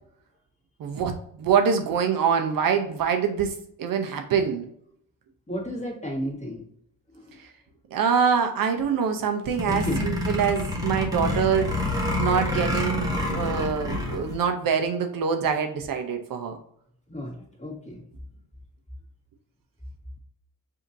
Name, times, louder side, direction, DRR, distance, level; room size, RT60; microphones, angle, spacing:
voice 1, 0.8-4.7 7.4-7.5 7.9-16.6, right 6 dB, 65° right, 5 dB, 0.7 m, -25 dB
voice 2, 5.5-6.6 7.1-7.4 9.7-10.0 17.1-18.0, equal, 20° left, -3 dB, 1.7 m, -33 dB
sound 1, 9.5-14.4, left 2 dB, 10° right, 1.0 m, -27 dB
5.1 x 2.8 x 2.6 m, 0.68 s
cardioid pair, 110°, 37 cm